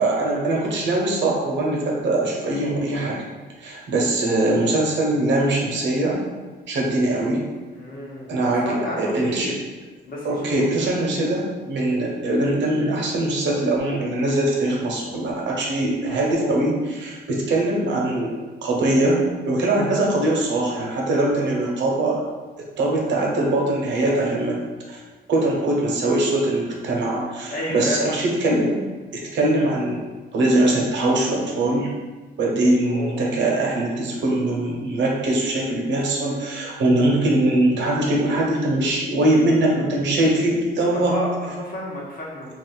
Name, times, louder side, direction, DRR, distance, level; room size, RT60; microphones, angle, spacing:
voice 1, 0.0-3.2 3.6-6.2 6.7-7.4 8.3-9.5 10.2-18.3 18.6-22.2 22.8-24.6 24.9-25.0 25.3-28.8 29.3-30.0 30.3-31.9 32.4-41.2, right 1 dB, 65° right, -2 dB, 0.8 m, -22 dB
voice 2, 7.7-8.3 8.6-9.6 10.1-10.7 11.1-11.2 16.2-16.6 27.5-28.2 32.8-33.2 40.9-42.5, left 1 dB, 45° left, -3 dB, 1.0 m, -30 dB
2.5 x 2.4 x 3.8 m, 1.3 s
cardioid pair, 90°, 20 cm